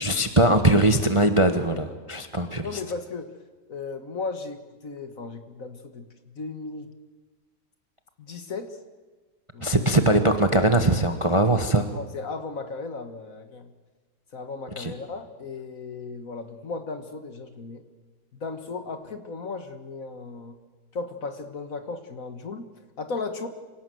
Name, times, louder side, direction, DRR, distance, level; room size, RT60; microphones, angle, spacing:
voice 1, 0.0-2.6 9.6-11.9 14.8-14.9, right 1 dB, 20° right, 8 dB, 1.0 m, -21 dB
voice 2, 2.4-3.3 3.7-6.9 8.2-8.8 9.5-9.7 11.9-13.7 14.3-17.8 18.3-20.6 20.9-22.7 23.0-23.5, left 4 dB, 50° left, 8 dB, 1.9 m, -36 dB
26.5 x 17.5 x 7.8 m, 1.4 s
omnidirectional pair, 1.9 m